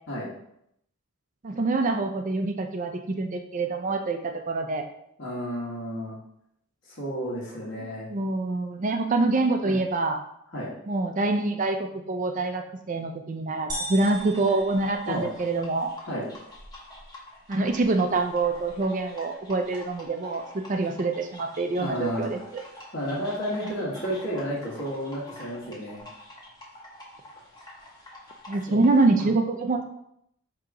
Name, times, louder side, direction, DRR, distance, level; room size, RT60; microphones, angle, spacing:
voice 1, 1.4-4.8 7.8-10.2 10.9-15.9 17.5-22.6 28.5-29.8, right 3 dB, 35° right, 5 dB, 0.4 m, -26 dB
voice 2, 5.2-6.2 6.9-8.1 9.6-9.8 10.5-10.7 15.1-15.2 16.1-16.2 21.8-22.4 22.9-26.0 28.7-28.8 29.1-29.3, equal, 55° left, -6 dB, 1.4 m, -32 dB
sound 1, 13.7-29.2, left 1 dB, 20° left, 0.9 m, -47 dB
sound 2, 13.7-15.6, right 1 dB, 20° right, 0.8 m, -37 dB
3.8 x 2.9 x 4.7 m, 0.75 s
head